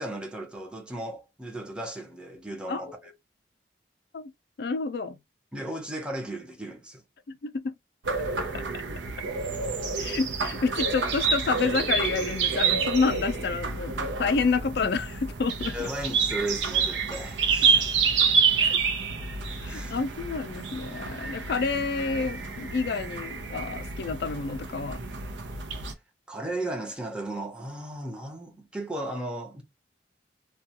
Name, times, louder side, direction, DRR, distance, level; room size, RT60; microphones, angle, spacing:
voice 1, 0.0-3.0 5.5-7.0 15.7-17.9 19.6-20.0 25.8-25.9 26.3-29.6, right 1 dB, 5° right, 0.6 m, -35 dB
voice 2, 4.6-5.2 7.3-7.7 8.5-8.6 10.0-15.9 18.6-18.8 19.6-25.0, left 4 dB, 65° left, 0.4 m, -29 dB
sound 1, 8.0-25.9, right 5 dB, 85° right, 0.6 m, -28 dB
2.3 x 2.3 x 2.8 m
head